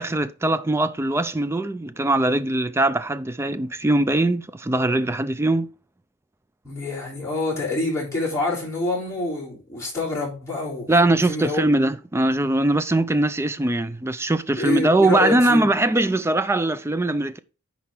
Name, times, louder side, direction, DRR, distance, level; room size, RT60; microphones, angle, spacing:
voice 1, 0.0-5.7 10.9-17.4, right 2 dB, 10° right, 0.3 m, -21 dB
voice 2, 6.6-10.9 11.2-11.7 14.6-15.7, left 2 dB, 15° left, 3.7 m, -26 dB
10.0 x 4.2 x 3.7 m
head